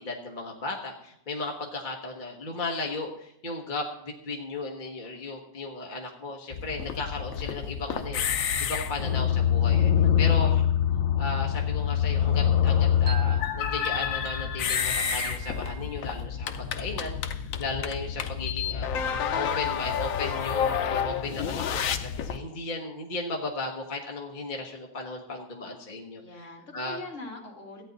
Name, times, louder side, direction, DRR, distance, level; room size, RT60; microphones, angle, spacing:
voice 1, 0.0-9.9 10.2-10.6 11.2-18.9 19.3-26.4 26.7-27.0, left 3 dB, 40° left, 0 dB, 1.3 m, -35 dB
sound 1, 6.5-22.4, left 8 dB, 85° left, 1.1 m, -26 dB
sound 2, 12.7-16.2, right 8 dB, 80° right, 0.4 m, -41 dB
voice 2, 26.2-27.8, left 2 dB, 65° left, -1 dB, 2.4 m, -42 dB
15.0 x 8.9 x 4.0 m, 0.76 s
omnidirectional pair, 1.4 m